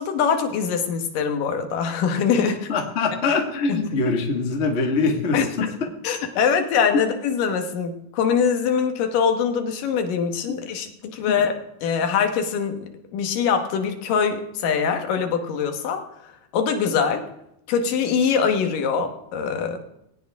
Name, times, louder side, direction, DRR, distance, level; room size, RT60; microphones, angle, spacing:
voice 1, 0.0-2.7 3.7-3.8 5.3-5.7 6.0-11.5 11.8-16.0 16.5-17.2 17.7-19.8, left 6 dB, 70° left, 5 dB, 2.8 m, -23 dB
voice 2, 2.7-5.7 6.9-7.1 11.3-11.4, left 3 dB, 35° left, 2 dB, 1.0 m, -23 dB
18.5 x 17.5 x 3.6 m, 0.82 s
omnidirectional pair, 4.3 m